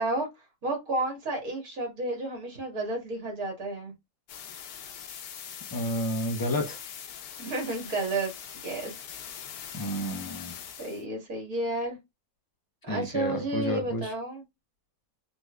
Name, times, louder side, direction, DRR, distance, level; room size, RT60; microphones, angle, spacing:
voice 1, 0.0-3.9 5.0-5.2 7.4-8.3 8.6-8.9 9.6-10.0 10.8-12.0 12.8-14.4, right 2 dB, 70° right, 2.1 m, -32 dB
sound 1, 4.3-11.0, left 8 dB, 90° left, 1.2 m, -42 dB
voice 2, 5.7-6.8 9.7-10.5 12.9-14.1, equal, 30° left, 0.4 m, -31 dB
3.9 x 3.2 x 2.3 m
omnidirectional pair, 1.6 m